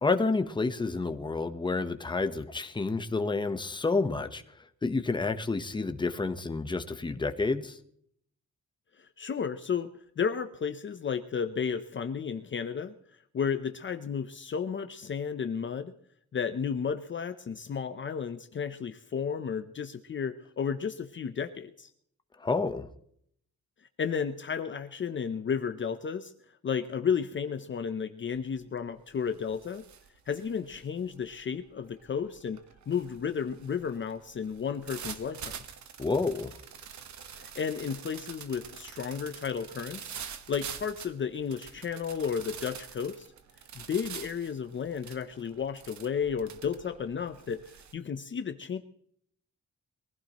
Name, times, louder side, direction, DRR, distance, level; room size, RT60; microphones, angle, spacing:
voice 1, 0.0-7.8 22.4-22.9 36.0-36.6, left 3 dB, 15° left, 8 dB, 1.0 m, -29 dB
voice 2, 9.0-12.9 13.3-15.9 16.3-21.9 24.0-26.3 26.6-29.8 30.3-32.6 32.9-35.5 37.3-40.2 40.5-43.3 43.7-47.6 47.9-48.8, left 6 dB, 40° left, 9 dB, 0.7 m, -33 dB
sound 1, 28.3-28.6 29.0-47.9, right 8 dB, 65° right, 1.4 m, -46 dB
22.5 x 15.5 x 3.0 m, 0.65 s
wide cardioid pair, 150°, 30 cm